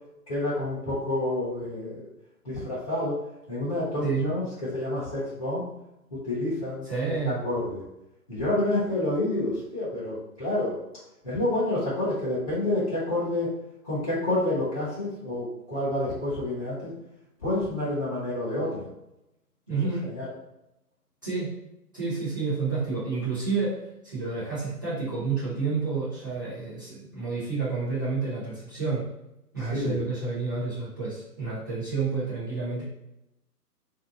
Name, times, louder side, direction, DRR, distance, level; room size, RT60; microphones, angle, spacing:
voice 1, 0.3-2.1 2.4-3.2 3.5-5.7 6.1-7.8 8.3-10.7 11.2-13.5 13.8-16.9 17.4-18.9 20.0-20.3 29.6-30.0, left 1 dB, 20° left, -14 dB, 0.8 m, -28 dB
voice 2, 6.9-7.4 19.7-20.1 21.2-21.5 21.9-29.0 29.5-32.8, right 4 dB, 15° right, -12 dB, 0.6 m, -29 dB
2.6 x 2.1 x 3.7 m, 0.86 s
figure-of-eight pair, 145°, 48 cm